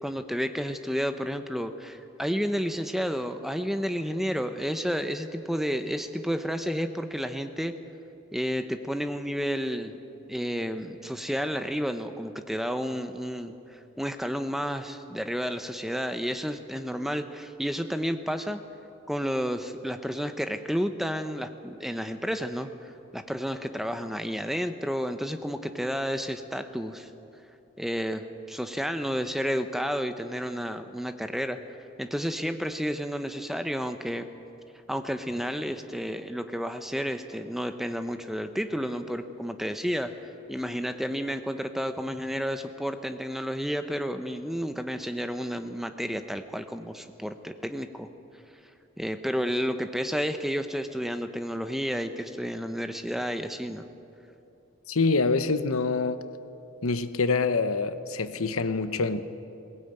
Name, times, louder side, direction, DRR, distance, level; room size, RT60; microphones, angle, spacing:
voice 1, 0.0-7.7 8.3-9.9 10.3-18.6 19.1-27.1 27.8-31.6 32.0-34.3 34.9-40.1 40.5-48.1 49.0-53.9, equal, ahead, 8 dB, 0.7 m, -31 dB
voice 2, 54.9-56.2 56.8-59.2, left 4 dB, 85° left, 11 dB, 1.0 m, -26 dB
21.5 x 18.0 x 9.0 m, 2.9 s
head